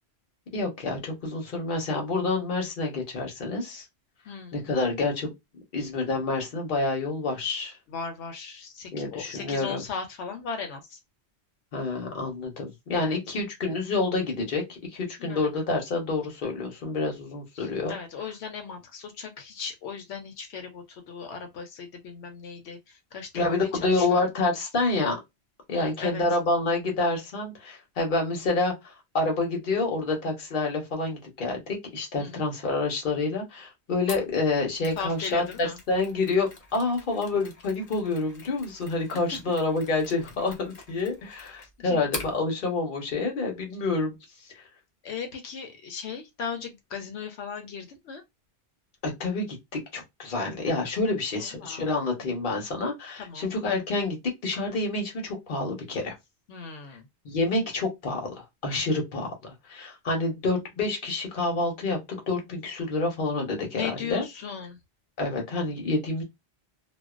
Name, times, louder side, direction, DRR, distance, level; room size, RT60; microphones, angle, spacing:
voice 1, 0.5-3.9 4.5-5.3 5.7-7.8 8.9-9.8 11.7-17.9 23.3-25.2 25.7-44.1 44.5-44.6 49.0-49.6 49.9-54.2 54.4-56.1 57.2-64.2 65.2-66.2, left 3 dB, 55° left, 1.0 m, -28 dB
voice 2, 4.3-4.6 7.9-11.0 13.0-13.2 15.2-15.6 17.6-24.2 25.7-26.2 32.1-32.5 35.0-35.8 39.1-39.2 41.8-42.1 45.0-48.2 51.4-51.8 52.2-52.4 53.2-53.5 56.5-57.1 63.7-64.8, left 6 dB, 85° left, 0.9 m, -37 dB
Mechanisms, 34.1-42.4, left 2 dB, 40° left, 0.6 m, -44 dB
2.4 x 2.2 x 2.4 m
omnidirectional pair, 1.1 m